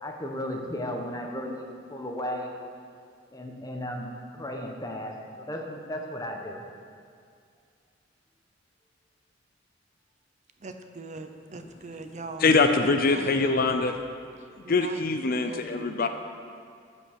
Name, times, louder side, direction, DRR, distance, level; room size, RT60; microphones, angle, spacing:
voice 1, 0.0-2.5 3.3-4.1 4.3-6.6, left 1 dB, 20° left, 1 dB, 1.2 m, -35 dB
voice 2, 10.6-12.4 12.8-13.8 14.6-15.0 15.4-16.1, right 3 dB, 40° right, 6 dB, 0.6 m, -41 dB
voice 3, 12.4-14.0 14.7-16.1, left 3 dB, 50° left, 7 dB, 0.6 m, -23 dB
15.0 x 5.4 x 6.4 m, 2.3 s
head